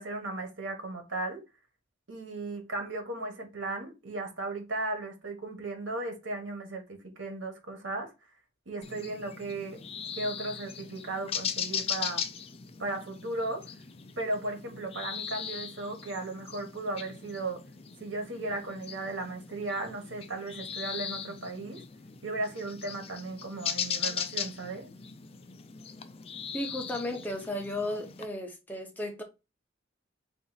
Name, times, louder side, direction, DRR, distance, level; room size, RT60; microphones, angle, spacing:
voice 1, 0.0-1.4 2.1-8.1 8.7-9.8 10.2-12.3 12.8-13.7 14.2-17.6 18.0-21.8 22.2-24.9, right 2 dB, 85° right, 1.4 m, -36 dB
sound 1, 8.8-28.3, left 7 dB, 30° left, 0.3 m, -39 dB
voice 2, 26.5-29.2, left 1 dB, 10° left, 0.8 m, -34 dB
3.9 x 2.6 x 4.0 m
head